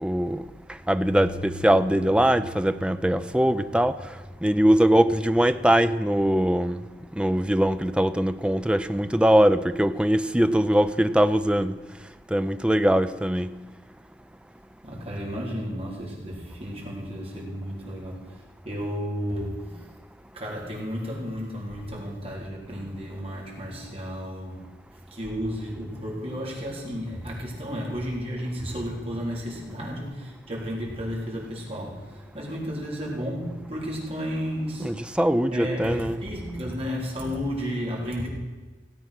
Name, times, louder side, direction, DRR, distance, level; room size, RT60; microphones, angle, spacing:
voice 1, 0.0-0.4 0.9-3.9 4.4-6.8 7.2-11.8 12.3-13.5 34.8-36.2, equal, 5° right, 10 dB, 0.5 m, -21 dB
sound 1, 0.8-7.4, right 1 dB, 50° left, 3.2 m, -43 dB
voice 2, 14.8-19.9 20.3-35.0 35.5-38.3, equal, 35° right, -3 dB, 4.1 m, -33 dB
17.5 x 8.5 x 6.1 m, 1.3 s
head